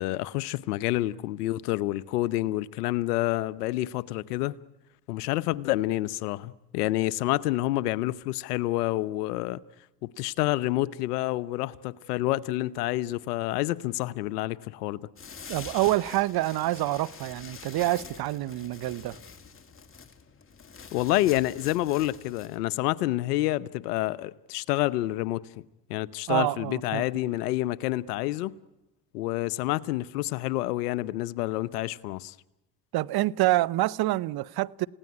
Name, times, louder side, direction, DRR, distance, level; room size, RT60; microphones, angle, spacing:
voice 1, 0.0-4.6 5.1-9.6 10.0-15.0 20.9-25.6 25.9-28.5 29.1-32.3, left 16 dB, 80° left, 0.9 m, -28 dB
sound 1, 15.2-22.6, left 5 dB, 25° left, 2.6 m, -46 dB
voice 2, 15.5-19.2 26.3-27.0 32.9-34.9, right 16 dB, 55° right, 0.8 m, -27 dB
28.5 x 17.5 x 9.8 m
hypercardioid pair, 70°, 46 cm